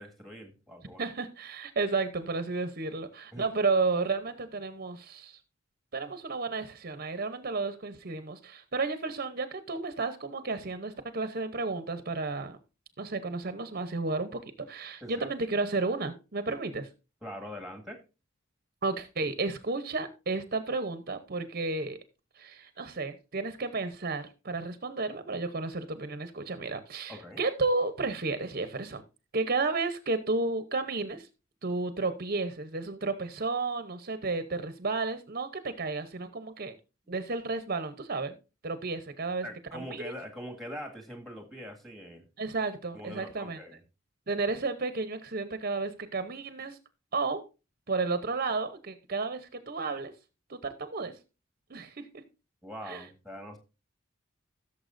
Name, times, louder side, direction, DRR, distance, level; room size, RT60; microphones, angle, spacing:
voice 1, 0.0-1.0 3.3-3.5 15.0-15.3 17.2-18.0 27.1-27.4 39.4-42.3 42.9-43.8 52.6-53.6, equal, ahead, 1.9 m, -43 dB
voice 2, 1.0-5.4 5.9-12.6 13.0-16.9 18.8-22.0 22.4-29.0 29.3-31.3 31.6-36.8 37.1-38.4 38.6-39.5 39.7-40.1 42.4-43.6 44.3-46.8 47.1-47.4 47.9-50.1 50.5-51.1 51.7-52.1 52.9-53.0, right 3 dB, 45° right, 0.8 m, -32 dB
16.5 x 6.9 x 2.6 m
head